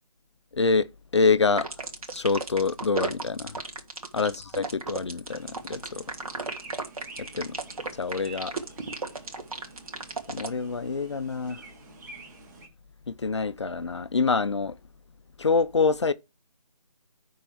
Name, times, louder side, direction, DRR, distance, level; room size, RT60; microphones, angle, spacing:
voice 1, 0.5-0.9 1.1-1.7 2.1-3.6 4.1-6.0 7.2-7.5 8.0-8.5 10.3-11.6 13.1-14.8 15.4-16.1, left 4 dB, 45° left, 0.5 m, -26 dB
sound 1, 1.6-10.5, right 3 dB, 60° right, 2.7 m, -34 dB
sound 2, 5.3-12.7, right 3 dB, 25° right, 2.6 m, -48 dB
10.5 x 4.6 x 4.7 m
figure-of-eight pair, 160°, 20 cm